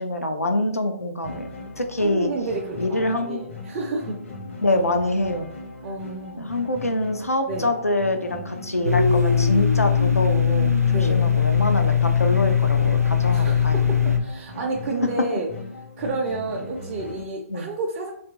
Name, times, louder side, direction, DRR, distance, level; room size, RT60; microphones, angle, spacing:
voice 1, 0.0-2.3 2.8-3.4 4.6-5.5 6.4-13.8 17.5-17.7, left 1 dB, 85° left, 5 dB, 0.5 m, -25 dB
sound 1, 1.2-17.2, left 2 dB, 55° left, 0.8 m, -38 dB
voice 2, 2.0-4.2 5.8-6.4 7.4-7.7 10.9-11.2 13.3-15.5 16.0-18.1, right 2 dB, 35° right, -2 dB, 0.5 m, -30 dB
Domestic sounds home sounds, 8.8-14.2, left 7 dB, 90° right, 0.4 m, -20 dB
2.8 x 2.4 x 3.6 m, 0.71 s
figure-of-eight pair, 120°, 8 cm